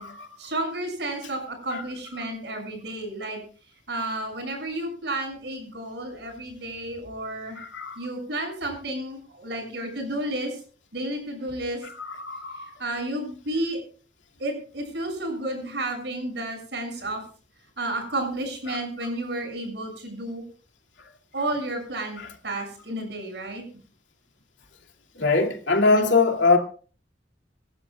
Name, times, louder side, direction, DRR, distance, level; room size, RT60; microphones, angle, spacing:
voice 1, 0.4-3.4 3.9-7.6 8.0-10.6 10.9-11.8 12.5-13.8 14.4-17.2 17.8-20.4 21.3-23.6 25.9-26.1, right 1 dB, 70° right, 7.1 m, -31 dB
voice 2, 7.6-8.0 12.0-12.7 18.7-18.8 25.2-26.6, left 3 dB, 90° left, 2.6 m, -22 dB
26.5 x 12.0 x 2.4 m
head